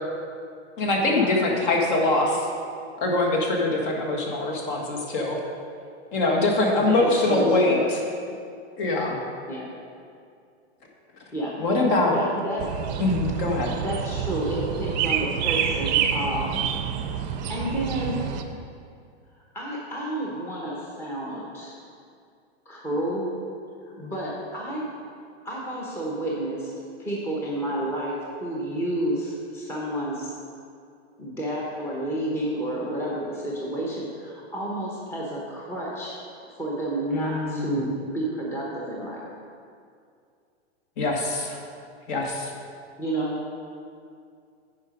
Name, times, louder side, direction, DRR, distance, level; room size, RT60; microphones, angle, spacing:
voice 1, 0.8-2.5 3.0-5.4 6.1-7.8 8.8-9.2 11.6-12.2 13.0-13.7 37.1-37.8 41.0-41.6 42.1-42.5, left 2 dB, 50° left, 0 dB, 1.6 m, -23 dB
voice 2, 6.8-7.9 9.5-9.7 11.3-11.6 12.1-12.6 13.7-16.6 17.2-18.4 19.5-21.8 22.7-23.4 24.0-24.8 25.4-26.7 27.0-30.3 31.2-36.2 36.5-39.2 43.0-43.4, right 1 dB, 10° left, -5 dB, 0.9 m, -30 dB
sound 1, 12.6-18.4, right 8 dB, 40° right, 0.6 m, -28 dB
9.4 x 5.0 x 5.1 m, 2.3 s
supercardioid pair, 155°, 33 cm